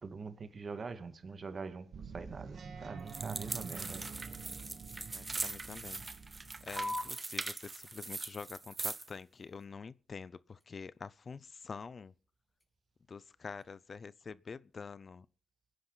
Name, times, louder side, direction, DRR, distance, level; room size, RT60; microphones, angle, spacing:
voice 1, 0.0-4.1, right 4 dB, 50° right, 2.0 m, -44 dB
sound 1, 1.9-7.1, right 5 dB, 70° right, 1.7 m, -47 dB
sound 2, 3.1-9.1, right 3 dB, 30° right, 1.0 m, -41 dB
voice 2, 5.1-6.1 6.6-12.1 13.1-15.3, left 5 dB, 50° left, 0.7 m, -46 dB
sound 3, 6.8-13.8, left 1 dB, 15° left, 4.5 m, -48 dB
23.0 x 10.5 x 4.0 m
cardioid pair, 85°, 0 cm